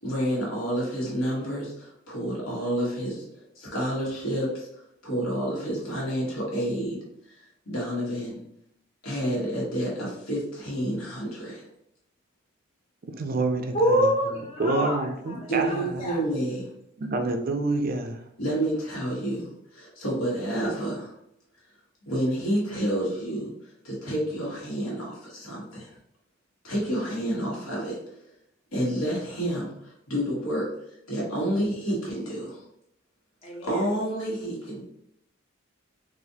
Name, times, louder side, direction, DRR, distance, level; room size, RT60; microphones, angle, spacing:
voice 1, 0.0-7.0 7.3-8.4 9.0-11.6 15.5-16.7 18.4-21.1 22.1-25.9 26.6-28.2 28.7-30.7 31.1-32.6 33.6-34.8, right 1 dB, 85° left, -4 dB, 1.5 m, -29 dB
voice 2, 13.1-16.1 17.0-18.2, right 2 dB, 45° right, 5 dB, 0.4 m, -28 dB
voice 3, 13.7-16.2 33.4-33.8, equal, 30° left, -1 dB, 0.6 m, -26 dB
4.0 x 2.5 x 2.7 m, 0.77 s
head